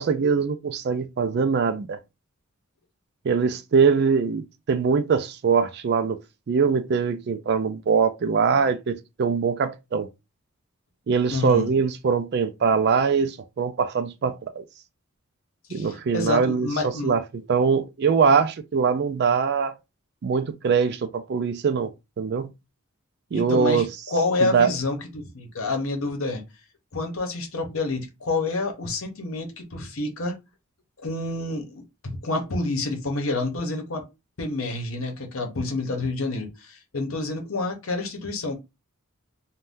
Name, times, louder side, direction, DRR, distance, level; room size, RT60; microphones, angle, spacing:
voice 1, 0.0-2.0 3.2-6.2 6.5-10.1 11.1-14.6 15.7-19.8 20.2-21.9 22.2-22.5 23.3-23.9 24.4-24.7, right 5 dB, 50° right, 0.3 m, -22 dB
voice 2, 11.3-11.7 15.7-17.1 23.3-26.4 26.9-30.4 31.0-34.0 34.4-38.5, left 2 dB, 75° left, 0.9 m, -28 dB
2.6 x 2.2 x 3.5 m
head